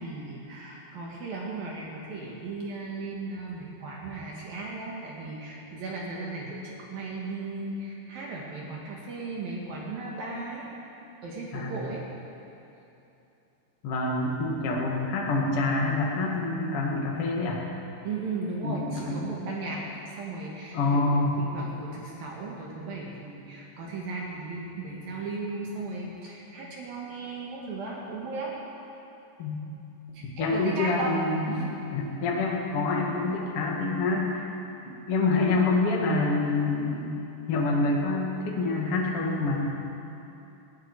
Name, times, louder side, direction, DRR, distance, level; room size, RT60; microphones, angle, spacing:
voice 1, 0.0-10.7 11.2-12.0 18.0-19.8 20.2-21.0 21.4-28.5 30.1-31.1 31.5-31.6, right 3 dB, 55° right, -3 dB, 3.0 m, -36 dB
voice 2, 13.8-17.6 18.6-19.2 20.7-21.4 29.4-29.6 30.4-34.4 35.1-37.1 37.5-39.6, left 3 dB, 55° left, -2 dB, 1.6 m, -26 dB
20.0 x 15.0 x 4.8 m, 2.9 s
omnidirectional pair, 5.8 m